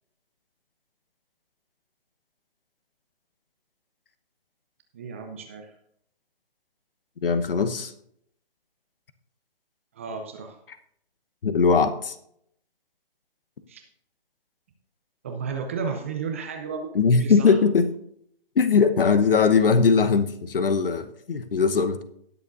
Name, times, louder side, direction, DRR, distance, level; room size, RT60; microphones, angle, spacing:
voice 1, 4.9-5.7 9.9-10.6 13.7-13.8 15.2-17.6, right 5 dB, 15° right, 4 dB, 0.5 m, -33 dB
voice 2, 7.2-7.9 11.4-12.1 16.9-17.9 18.6-22.0, left 5 dB, 65° left, 11 dB, 1.0 m, -20 dB
19.0 x 7.1 x 2.6 m, 0.72 s
hypercardioid pair, 150°, 29 cm